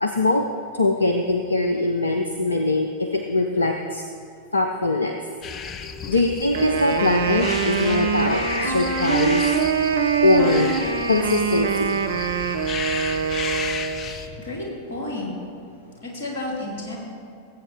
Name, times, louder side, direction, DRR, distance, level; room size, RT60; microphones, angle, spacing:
voice 1, 0.0-0.4 0.7-4.0 4.5-5.1 6.1-9.4 10.2-10.7 11.1-11.9, left 2 dB, 80° left, 5 dB, 0.6 m, -22 dB
sound 1, 5.4-14.3, left 6 dB, 30° left, 0.6 m, -33 dB
Wind instrument woodwind instrument, 6.5-14.2, right 6 dB, 65° right, 0.7 m, -24 dB
voice 2, 14.1-15.3 16.0-17.0, left 2 dB, 55° left, -3 dB, 2.8 m, -32 dB
19.0 x 8.3 x 3.4 m, 2.4 s
figure-of-eight pair, 90°, 0 cm